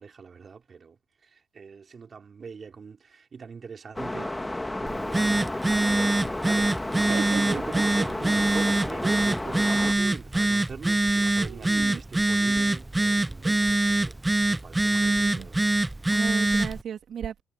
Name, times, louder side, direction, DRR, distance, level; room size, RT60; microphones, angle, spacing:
voice 1, 0.0-6.7 7.0-14.2 14.5-15.7, right 5 dB, 40° right, 3.9 m, -42 dB
sound 1, 4.0-9.9, left 1 dB, 10° left, 2.0 m, -32 dB
Telephone, 4.9-16.8, right 2 dB, 15° right, 0.8 m, -24 dB
voice 2, 6.9-7.6 11.4-12.0 13.4-13.6 14.8-15.5 16.1-17.4, right 8 dB, 65° right, 3.3 m, -36 dB
cardioid pair, 90°, 0 cm